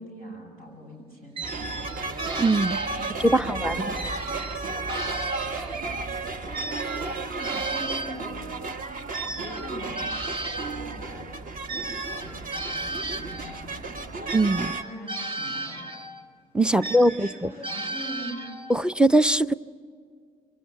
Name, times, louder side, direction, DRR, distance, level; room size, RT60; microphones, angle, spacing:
voice 1, 0.0-1.9 2.9-4.0 6.4-8.8 9.2-10.1 10.7-11.3 11.7-14.0 14.8-15.9 16.7-18.5, equal, 85° right, 0 dB, 6.2 m, -42 dB
sound 1, 1.3-3.4 3.9-6.0 6.5-10.9 11.7-13.6 14.3-16.2 16.8-18.8, right 2 dB, 30° right, 2.7 m, -35 dB
sound 2, 1.4-14.8, right 3 dB, 45° right, 1.6 m, -33 dB
voice 2, 2.4-2.8 3.2-3.7 14.3-14.7 16.5-17.3 18.7-19.5, right 1 dB, 5° right, 16 dB, 0.6 m, -21 dB
26.0 x 22.5 x 8.3 m, 2.1 s
hypercardioid pair, 50°, 19 cm